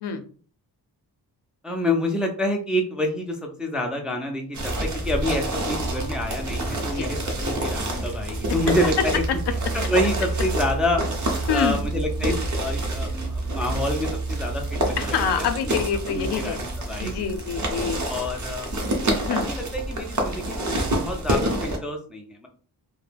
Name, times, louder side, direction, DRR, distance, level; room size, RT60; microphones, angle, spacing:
voice 1, 1.6-9.2 9.7-11.0 11.5-15.5 16.1-17.4 18.1-18.9 19.4-22.5, left 1 dB, ahead, 2 dB, 0.3 m, -28 dB
sound 1, 4.5-21.8, right 1 dB, 45° right, 0.7 m, -27 dB
voice 2, 11.5-11.8 15.0-16.6 17.0-18.0 19.2-19.5, left 6 dB, 75° left, 7 dB, 0.5 m, -26 dB
2.2 x 2.1 x 3.2 m, 0.43 s
wide cardioid pair, 105°, 40 cm